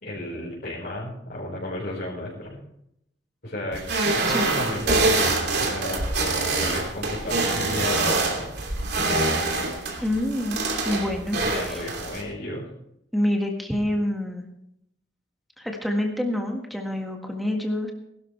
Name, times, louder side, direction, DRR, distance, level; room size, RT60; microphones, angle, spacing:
voice 1, 0.0-2.6 3.4-3.8 4.1-5.2 5.6-6.0 6.6-8.5 11.4-12.7, left 1 dB, 50° left, -7 dB, 4.7 m, -33 dB
sound 1, 3.7-12.2, right 2 dB, 60° right, 2.9 m, -25 dB
voice 2, 10.0-11.8 13.1-14.5 15.6-17.9, left 1 dB, ahead, 1 dB, 1.7 m, -27 dB
21.0 x 12.5 x 3.4 m, 0.77 s
head